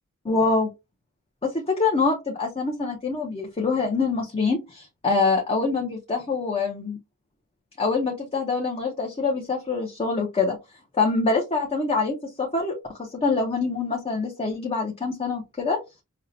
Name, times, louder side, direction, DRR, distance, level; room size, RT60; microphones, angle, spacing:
voice 1, 0.2-0.7 1.4-7.0 7.8-10.6 11.0-15.8, left 4 dB, 25° left, 0 dB, 0.6 m, -25 dB
5.3 x 2.1 x 2.6 m, 0.24 s
head